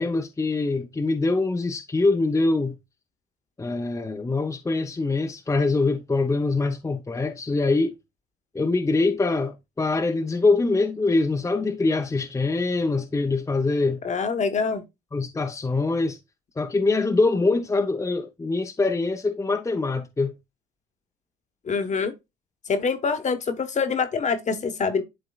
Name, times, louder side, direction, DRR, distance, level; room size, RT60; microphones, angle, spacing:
voice 1, 0.0-2.8 3.6-7.9 8.5-14.0 15.1-16.2 16.6-20.3, left 3 dB, 15° left, 0.7 m, -24 dB
voice 2, 14.0-14.8 21.6-22.1 22.7-25.0, left 5 dB, 35° left, 1.1 m, -25 dB
11.0 x 3.7 x 2.3 m
supercardioid pair, 90°, 21 cm